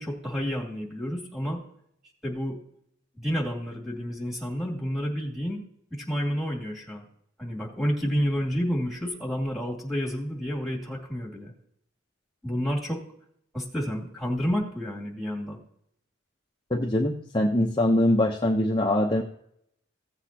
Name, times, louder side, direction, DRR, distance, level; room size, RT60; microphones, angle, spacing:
voice 1, 0.0-1.6 2.2-2.6 3.2-5.6 5.9-7.0 7.4-11.5 12.4-13.0 13.5-15.6, equal, ahead, -3 dB, 2.5 m, -30 dB
voice 2, 16.7-19.2, left 1 dB, 25° left, -1 dB, 0.8 m, -23 dB
16.5 x 8.1 x 2.9 m, 0.71 s
head